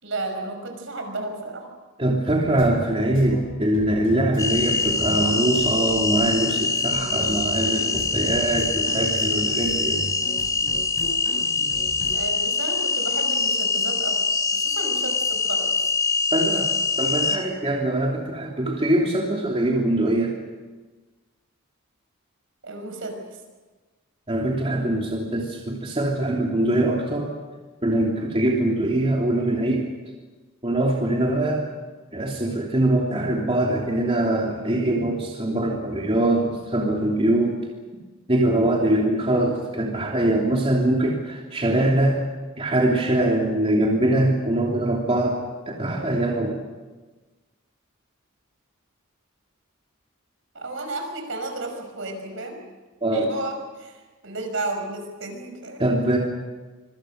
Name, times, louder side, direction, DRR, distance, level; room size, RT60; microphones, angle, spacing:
voice 1, 0.0-1.7 12.1-14.2 14.5-15.7 22.6-23.2 50.5-52.6 53.1-55.9, right 2 dB, 65° right, 5 dB, 5.9 m, -33 dB
voice 2, 2.0-10.0 16.3-16.7 17.0-20.4 24.3-27.3 27.8-29.8 30.6-31.6 32.1-37.6 38.3-42.2 42.6-45.4 45.7-46.6 53.0-53.3 55.8-56.2, right 1 dB, 25° right, -2 dB, 3.1 m, -23 dB
sound 1, 2.5-12.1, equal, 65° left, 6.4 m, -37 dB
sound 2, 4.4-17.4, left 3 dB, 15° left, 2.9 m, -24 dB
26.0 x 25.0 x 6.5 m, 1.3 s
head